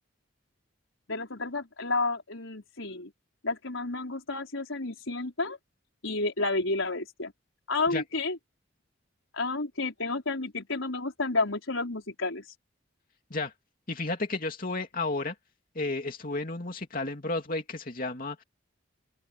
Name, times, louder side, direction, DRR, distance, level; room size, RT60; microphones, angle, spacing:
voice 1, 1.1-3.1 3.4-5.6 6.0-7.3 7.7-8.4 9.3-12.5, left 3 dB, 85° left, 4.8 m, -31 dB
voice 2, 13.9-15.3 15.7-18.4, left 2 dB, 45° left, 2.7 m, -32 dB
open air
head